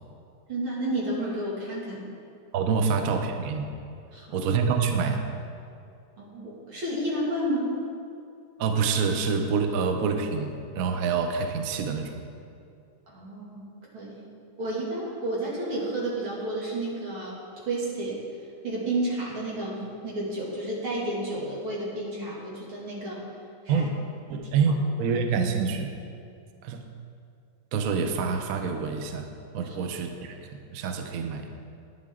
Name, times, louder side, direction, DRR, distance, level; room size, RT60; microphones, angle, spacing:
voice 1, 0.5-2.1 2.7-2.8 4.1-4.4 6.2-7.8 13.1-13.7 13.9-14.2 14.6-18.2 18.6-23.2 23.6-23.9 24.6-24.7 29.6-29.9, right 1 dB, 90° right, -5 dB, 3.2 m, -31 dB
voice 2, 2.5-3.7 4.3-5.2 8.6-10.5 10.8-12.2 23.7-23.9 24.3-25.9 26.6-26.8 27.7-29.3 29.5-30.4 30.7-31.5, right 5 dB, 60° right, 5 dB, 1.0 m, -26 dB
11.5 x 9.8 x 3.7 m, 2.4 s
omnidirectional pair, 2.2 m